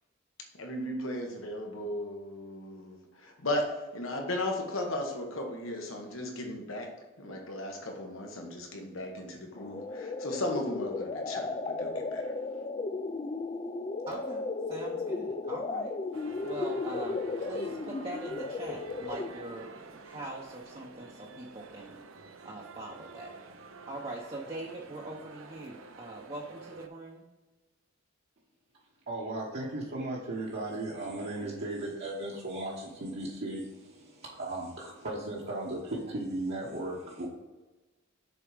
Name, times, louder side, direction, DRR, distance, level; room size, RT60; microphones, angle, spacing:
voice 1, 0.6-12.3, left 1 dB, 80° left, 1.3 m, -36 dB
sound 1, 9.6-19.5, left 3 dB, 25° left, 0.4 m, -35 dB
voice 2, 14.1-15.9 16.4-22.0 22.4-23.3 23.9-27.3, right 2 dB, 25° right, 0.7 m, -42 dB
sound 2, 16.1-26.9, right 4 dB, 80° right, 0.6 m, -49 dB
voice 3, 29.1-37.3, right 2 dB, 55° right, 1.1 m, -36 dB
6.8 x 4.1 x 4.9 m
head